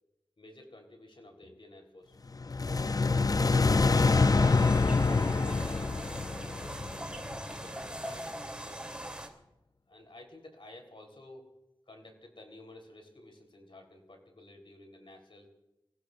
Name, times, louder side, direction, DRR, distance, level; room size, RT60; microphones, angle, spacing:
voice 1, 0.4-2.2 4.7-5.1 5.4-6.1 7.4-8.8 9.9-11.5 11.9-15.5, left 1 dB, 75° left, 3 dB, 3.8 m, -52 dB
sound 1, 2.4-7.5, left 4 dB, 45° left, 0.4 m, -26 dB
sound 2, 3.9-9.3, right 1 dB, 10° right, 3.0 m, -41 dB
27.5 x 16.5 x 2.5 m, 0.92 s
wide cardioid pair, 60°, 9 cm